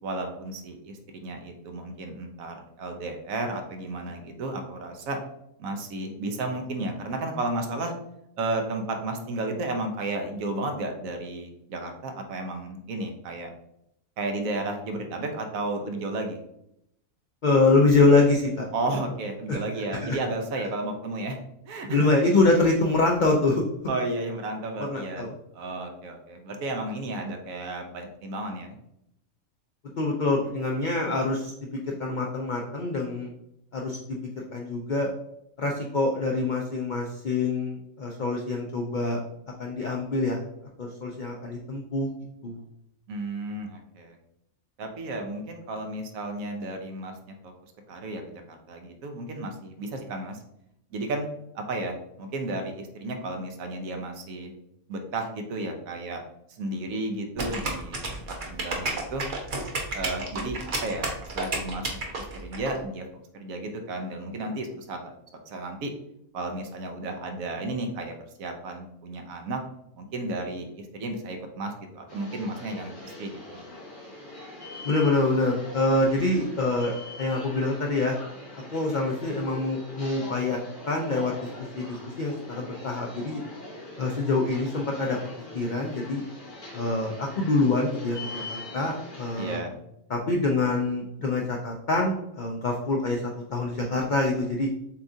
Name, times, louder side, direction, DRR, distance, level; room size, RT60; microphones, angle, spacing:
voice 1, 0.0-5.2 5.6-7.9 8.4-13.5 14.2-16.4 18.7-22.1 23.9-25.3 25.5-28.8 43.1-44.2 44.8-47.5 47.9-50.4 50.9-51.3 51.5-54.5 54.9-56.2 56.5-59.2 59.9-61.1 61.3-61.9 62.2-63.0 63.3-65.1 65.5-65.9 66.3-69.6 70.0-73.6 89.4-89.8, right 2 dB, 75° right, 4 dB, 1.1 m, -33 dB
voice 2, 17.4-18.7 19.5-19.6 20.0-20.2 21.9-23.6 24.8-25.3 30.0-33.3 33.7-35.1 35.6-39.2 39.6-40.4 40.8-42.1 42.4-42.6 74.8-78.2 78.7-80.6 80.8-81.5 81.7-83.4 84.0-85.2 85.5-86.2 86.7-89.6 90.1-93.2 93.5-94.7, left 2 dB, 75° left, 0 dB, 0.4 m, -25 dB
sound 1, 57.4-62.7, right 3 dB, 45° right, 0.8 m, -31 dB
sound 2, 72.1-89.6, left 2 dB, 40° left, 1.0 m, -42 dB
7.0 x 2.4 x 2.6 m, 0.80 s
omnidirectional pair, 1.5 m